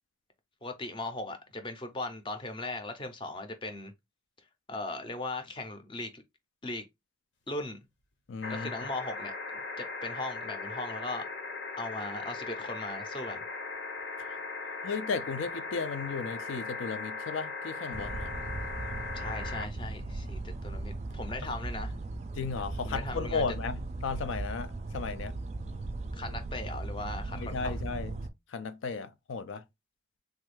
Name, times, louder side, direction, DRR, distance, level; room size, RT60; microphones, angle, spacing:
voice 1, 0.6-3.9 4.7-6.2 6.6-6.8 7.5-7.8 8.5-9.3 10.0-11.2 11.8-13.4 19.1-22.0 22.8-23.5 26.1-27.8, left 2 dB, 25° left, 0.5 m, -38 dB
voice 2, 8.3-8.7 14.8-18.3 21.4-21.5 22.4-25.3 27.3-28.2 28.5-29.6, left 5 dB, 90° left, 0.4 m, -35 dB
sound 1, 8.4-19.7 21.1-21.2, left 4 dB, 75° left, 0.8 m, -39 dB
sound 2, 17.9-28.3, right 2 dB, 35° right, 0.3 m, -37 dB
3.2 x 2.2 x 3.2 m
head